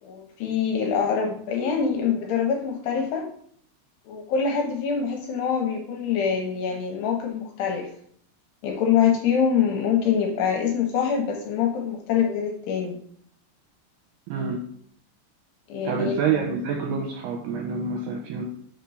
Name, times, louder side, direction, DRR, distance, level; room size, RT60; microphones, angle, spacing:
voice 1, 0.0-3.3 4.1-7.9 8.6-13.0 15.7-16.2, left 7 dB, 75° left, 2 dB, 2.6 m, -24 dB
voice 2, 14.3-14.6 15.8-18.4, right 5 dB, 80° right, 1 dB, 2.4 m, -27 dB
6.1 x 4.4 x 5.4 m, 0.63 s
omnidirectional pair, 5.5 m